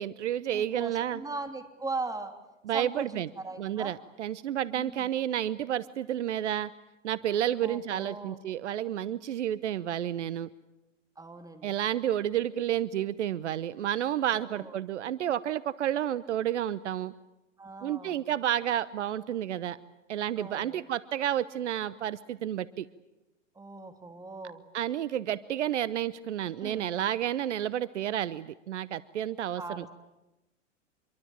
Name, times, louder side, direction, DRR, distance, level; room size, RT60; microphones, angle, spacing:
voice 1, 0.0-1.2 2.6-3.3 3.6-6.7 7.0-10.5 11.6-17.1 17.8-19.8 20.1-22.9 24.7-29.9, right 11 dB, 70° right, 18 dB, 1.0 m, -30 dB
voice 2, 0.5-2.3 2.7-3.9 4.7-5.1 7.6-8.4 11.2-11.7 14.3-14.7 17.6-18.2 20.4-20.8 23.5-24.6 26.6-26.9 29.6-29.9, right 3 dB, 10° right, 7 dB, 3.1 m, -39 dB
26.0 x 23.5 x 8.8 m, 0.98 s
hypercardioid pair, 100°, 37 cm